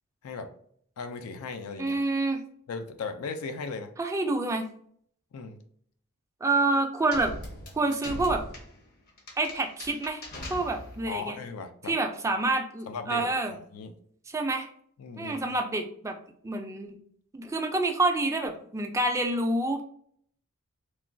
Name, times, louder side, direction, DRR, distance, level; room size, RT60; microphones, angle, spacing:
voice 1, 1.0-2.0 2.7-3.9 5.3-5.6 11.1-11.9 12.9-13.9 15.0-15.5, left 4 dB, 80° left, 8 dB, 0.4 m, -37 dB
voice 2, 1.8-2.4 4.0-4.7 6.4-7.3 7.8-8.4 9.4-10.2 10.5-11.4 11.9-13.6 14.3-14.7 15.2-16.2 16.4-17.0 17.3-19.8, right 2 dB, 15° right, 4 dB, 0.3 m, -27 dB
sound 1, 7.1-11.2, left 1 dB, 45° left, 0.7 m, -41 dB
3.0 x 2.2 x 2.6 m, 0.62 s
head